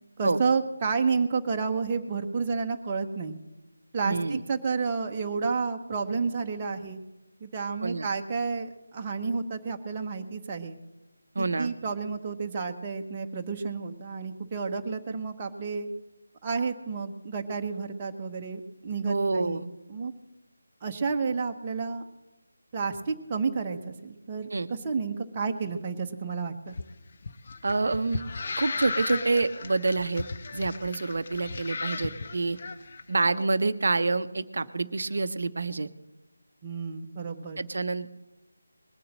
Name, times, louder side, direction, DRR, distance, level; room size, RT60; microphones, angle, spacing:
voice 1, 0.2-3.3 3.9-7.0 7.4-10.8 11.4-15.9 16.4-20.1 20.8-22.0 22.7-26.8 36.6-37.6, right 5 dB, 20° right, 3 dB, 0.9 m, -31 dB
voice 2, 4.0-4.4 7.8-8.1 11.3-11.7 19.1-19.6 24.5-24.7 27.6-28.2 28.6-30.2 30.5-32.6 33.1-35.9 37.6-38.1, right 3 dB, 50° right, 13 dB, 0.7 m, -27 dB
sound 1, 26.7-33.0, left 4 dB, 35° left, 0.7 m, -36 dB
20.0 x 6.8 x 7.6 m, 0.98 s
figure-of-eight pair, 160°, 0 cm